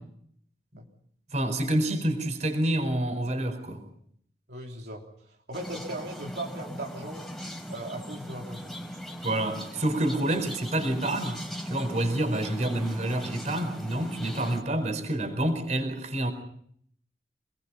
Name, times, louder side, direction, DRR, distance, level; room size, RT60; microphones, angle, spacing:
voice 1, 1.3-3.8 9.2-16.3, right 1 dB, 40° right, 4.6 m, -28 dB
voice 2, 4.5-5.0 5.5-7.2 7.7-8.8, right 1 dB, 70° right, 3.6 m, -38 dB
sound 1, 5.5-14.6, equal, ahead, 4.7 m, -39 dB
28.5 x 20.5 x 5.7 m
head